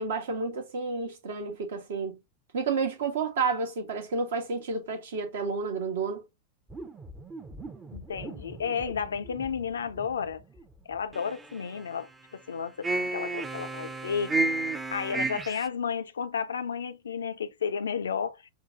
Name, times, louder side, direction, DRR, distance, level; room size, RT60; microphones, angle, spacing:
voice 1, 0.0-2.2 2.5-6.2, right 4 dB, 60° right, 0.8 m, -30 dB
sound 1, 6.7-10.7 11.1-12.0 12.8-15.7, right 2 dB, 15° right, 0.6 m, -34 dB
voice 2, 7.9-10.4 10.9-14.3 14.9-18.5, left 6 dB, 70° left, 0.4 m, -32 dB
5.6 x 2.3 x 2.5 m
figure-of-eight pair, 90°, 0 cm